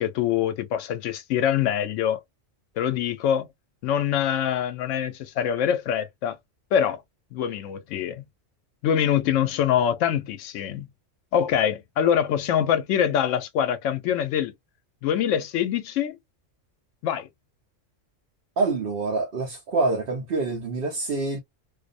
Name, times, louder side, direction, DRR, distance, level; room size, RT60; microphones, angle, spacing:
voice 1, 0.0-2.2 2.8-3.5 3.8-6.4 6.7-7.0 7.3-8.2 8.8-10.9 11.3-14.5 15.0-16.2 17.0-17.3, left 9 dB, 80° left, 0.9 m, -24 dB
voice 2, 18.6-21.4, right 3 dB, 55° right, 0.8 m, -26 dB
2.5 x 2.0 x 2.5 m
omnidirectional pair, 1.3 m